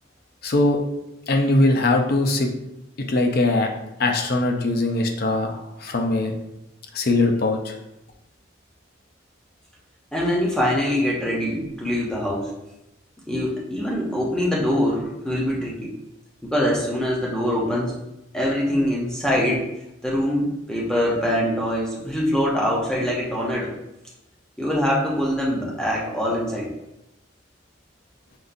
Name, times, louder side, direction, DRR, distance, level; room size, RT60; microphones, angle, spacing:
voice 1, 0.4-0.8 1.3-2.5 3.1-3.7 4.0-6.3 6.9-7.8, left 2 dB, 50° left, 3 dB, 0.4 m, -21 dB
voice 2, 10.1-12.5 13.3-15.9 16.4-18.0 18.3-19.7 20.0-23.7 24.6-26.7, equal, 5° left, -5 dB, 0.7 m, -23 dB
5.2 x 2.5 x 2.5 m, 0.91 s
head